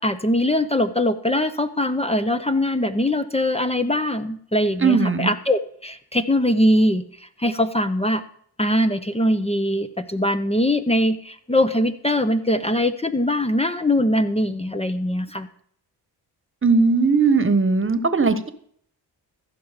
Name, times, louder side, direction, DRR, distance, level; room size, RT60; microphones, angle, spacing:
voice 1, 0.0-7.0 7.4-8.2 8.6-15.5, left 1 dB, 15° left, 9 dB, 0.8 m, -22 dB
voice 2, 4.8-5.3 16.6-18.5, right 4 dB, 25° right, 12 dB, 1.3 m, -18 dB
14.5 x 5.9 x 5.1 m, 0.62 s
supercardioid pair, 45°, 45 cm